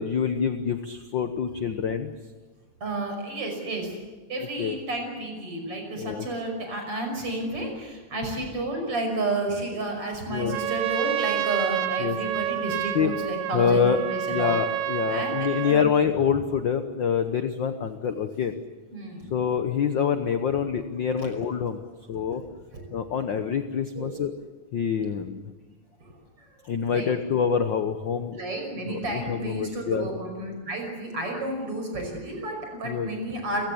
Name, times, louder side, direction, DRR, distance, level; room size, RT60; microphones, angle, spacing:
voice 1, 0.0-2.1 4.6-4.8 6.0-6.3 10.3-10.6 12.0-12.2 12.9-13.1 13.5-14.0 14.3-18.5 19.3-21.8 22.1-22.4 22.9-24.3 24.7-25.4 26.7-28.4 28.9-30.1 32.8-33.1, left 7 dB, 65° left, 9 dB, 1.2 m, -26 dB
voice 2, 2.8-3.9 4.3-7.7 8.1-14.6 15.1-15.4 15.6-15.8 18.9-19.2 21.2-21.3 24.0-24.1 26.9-27.1 28.3-33.7, right 2 dB, 45° right, 3 dB, 6.6 m, -31 dB
Trumpet, 10.4-15.9, right 12 dB, 75° right, 2.4 m, -29 dB
29.0 x 17.0 x 8.6 m, 1.3 s
omnidirectional pair, 3.4 m